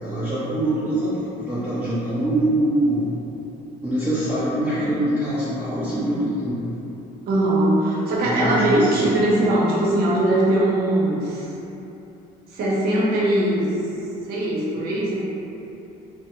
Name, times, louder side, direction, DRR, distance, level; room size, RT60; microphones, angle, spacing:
voice 1, 0.0-3.1 3.8-6.6 8.2-9.1, right 1 dB, 10° right, -13 dB, 0.5 m, -24 dB
voice 2, 7.3-11.5 12.5-13.7 14.3-15.2, right 1 dB, 65° right, -6 dB, 0.7 m, -20 dB
2.5 x 2.0 x 2.9 m, 2.9 s
cardioid pair, 110°, 17 cm